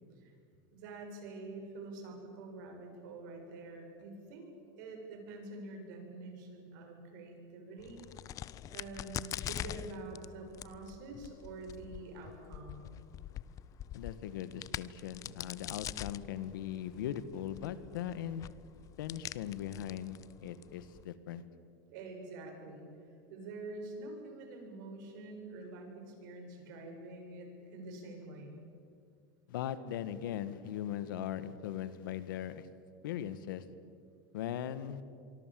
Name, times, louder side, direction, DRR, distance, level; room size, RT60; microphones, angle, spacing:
voice 1, 0.7-8.0 8.7-12.9 21.9-22.9 23.3-28.6, right 2 dB, 70° right, 3 dB, 7.7 m, -46 dB
Crack, 7.8-21.0, left 12 dB, 30° left, 0.6 m, -45 dB
voice 2, 13.9-18.5 19.0-21.4 29.5-32.7 33.0-33.6 34.3-35.0, left 10 dB, 85° left, 13 dB, 1.8 m, -39 dB
26.0 x 24.0 x 7.8 m, 2.4 s
supercardioid pair, 145°, 11 cm